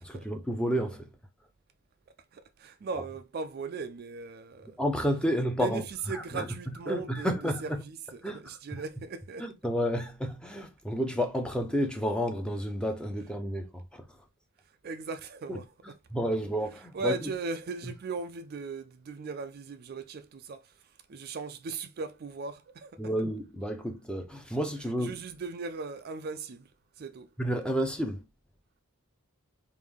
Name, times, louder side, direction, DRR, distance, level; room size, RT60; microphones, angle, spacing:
voice 1, 0.0-1.1 4.8-5.8 6.1-6.5 6.9-7.8 8.2-8.8 9.4-14.1 15.5-15.6 16.1-17.3 17.8-17.9 23.0-25.2 27.4-28.2, equal, 5° left, 0.6 m, -31 dB
voice 2, 2.3-4.8 5.6-7.3 7.6-9.5 14.8-15.7 16.9-20.8 21.1-23.1 25.0-26.7 27.0-27.3, right 4 dB, 45° right, 0.4 m, -38 dB
3.5 x 2.6 x 3.5 m
head